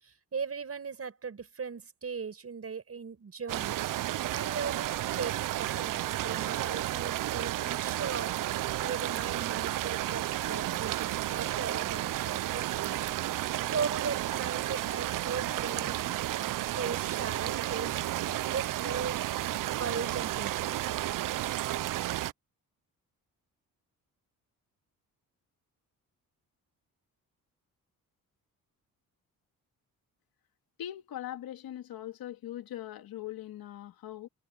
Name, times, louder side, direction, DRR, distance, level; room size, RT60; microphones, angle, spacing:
voice 1, 0.0-3.8 4.3-8.3 8.8-13.1 13.7-16.0 16.7-18.0 18.5-19.2 19.8-21.1, right 5 dB, 40° right, 6.2 m, -38 dB
sound 1, 3.5-22.3, right 14 dB, 65° right, 0.5 m, -32 dB
sound 2, 15.1-16.6 17.8-20.1, left 5 dB, 35° left, 7.1 m, -53 dB
voice 2, 30.8-34.3, left 12 dB, 85° left, 2.6 m, -41 dB
cardioid pair, 100°, 35 cm